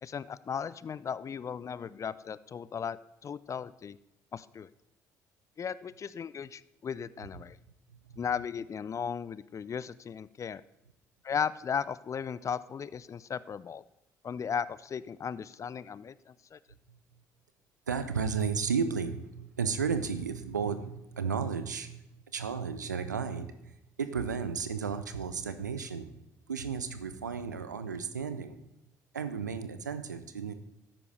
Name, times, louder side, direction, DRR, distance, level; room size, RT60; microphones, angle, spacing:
voice 1, 0.0-3.0 3.2-4.0 4.3-4.7 5.6-7.6 8.2-10.6 11.2-13.8 14.2-16.6, left 7 dB, 35° left, 18 dB, 0.4 m, -36 dB
voice 2, 17.9-22.0 22.3-23.7 24.0-26.1 26.5-28.6 29.1-30.5, right 6 dB, 85° right, 10 dB, 0.6 m, -33 dB
13.0 x 9.9 x 3.2 m, 0.88 s
figure-of-eight pair, 50°, 9 cm